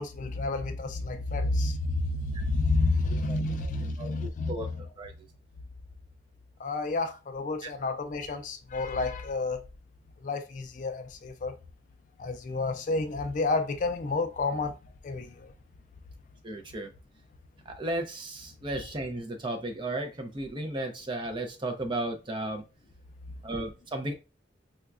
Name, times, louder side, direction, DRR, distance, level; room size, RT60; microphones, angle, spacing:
voice 1, 0.0-4.5 6.6-9.6 10.2-11.6 12.2-14.8 15.0-15.5, left 3 dB, 40° left, 0.3 m, -30 dB
voice 2, 3.3-3.7 4.0-4.7 5.0-5.1 7.6-7.7 16.4-16.9 17.7-22.6 23.4-24.1, right 1 dB, 25° right, 0.5 m, -34 dB
4.2 x 2.2 x 2.4 m
head